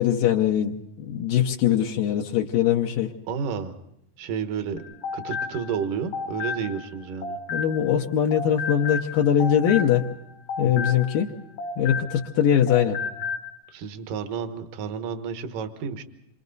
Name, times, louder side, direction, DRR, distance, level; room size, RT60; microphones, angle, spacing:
voice 1, 0.0-3.1 7.5-10.0 10.6-11.3 11.8-13.0, left 9 dB, 75° left, 1 dB, 2.6 m, -22 dB
voice 2, 3.3-3.7 4.2-4.8 5.1-7.4 10.6-10.9 13.7-16.0, right 6 dB, 65° right, 8 dB, 2.7 m, -31 dB
sound 1, 4.8-8.0 8.3-12.4 12.7-13.5, left 5 dB, 55° left, 1.9 m, -32 dB
28.0 x 25.5 x 4.0 m, 0.77 s
omnidirectional pair, 4.2 m